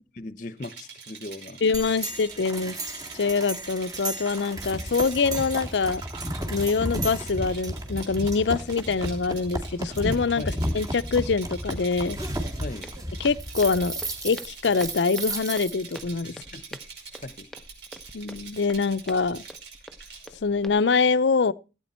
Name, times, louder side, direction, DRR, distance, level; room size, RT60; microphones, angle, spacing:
voice 1, 0.2-1.6 10.4-10.6 12.6-12.9 16.2-16.8 17.1-17.5, left 2 dB, 45° left, 0.8 m, -39 dB
Rattle, 0.6-20.3, right 5 dB, 85° right, 5.4 m, -45 dB
voice 2, 1.6-2.8 3.1-6.0 6.5-10.4 10.7-12.2 13.2-13.9 14.2-16.3 18.1-19.4 20.4-21.5, left 4 dB, 80° left, 0.6 m, -24 dB
sound 1, 1.7-16.0, right 1 dB, 20° right, 1.9 m, -33 dB
Walk footsteps, 12.8-20.7, equal, ahead, 0.7 m, -46 dB
16.0 x 8.9 x 4.3 m
head